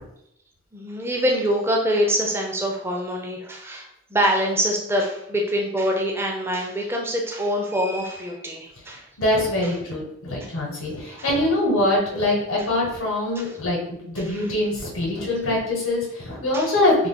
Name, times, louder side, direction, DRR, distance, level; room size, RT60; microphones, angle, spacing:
voice 1, 0.7-9.0 9.6-9.7 16.5-16.7, equal, 10° right, 0 dB, 0.4 m, -24 dB
voice 2, 9.2-17.1, left 1 dB, 85° left, -3 dB, 1.0 m, -23 dB
3.3 x 2.1 x 3.7 m, 0.77 s
head